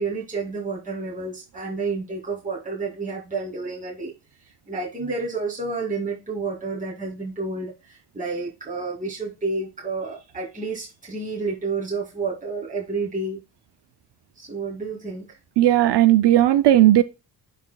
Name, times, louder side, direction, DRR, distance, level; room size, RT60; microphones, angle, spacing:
voice 1, 0.0-4.1 4.7-13.4 14.4-15.4, right 3 dB, 20° right, 2.9 m, -30 dB
voice 2, 15.6-17.0, right 13 dB, 85° right, 0.6 m, -15 dB
11.0 x 4.2 x 2.3 m
wide cardioid pair, 140°, 40 cm